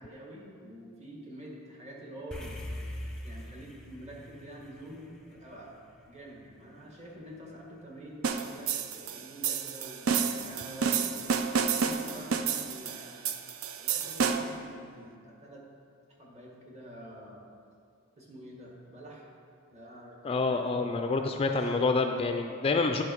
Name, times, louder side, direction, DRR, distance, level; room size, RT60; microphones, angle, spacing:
voice 1, 0.0-2.6 3.2-5.8 6.1-11.3 11.8-13.4 13.8-15.6 16.2-17.5 18.2-19.2 19.7-20.9 21.2-21.8, right 1 dB, 30° right, -3 dB, 1.7 m, -47 dB
sound 1, 2.3-6.8, left 1 dB, 5° left, 0.8 m, -42 dB
sound 2, 8.2-14.6, right 6 dB, 75° right, 0.5 m, -30 dB
voice 2, 20.2-23.0, left 3 dB, 25° left, 5 dB, 0.4 m, -27 dB
9.8 x 5.9 x 4.6 m, 2.3 s
head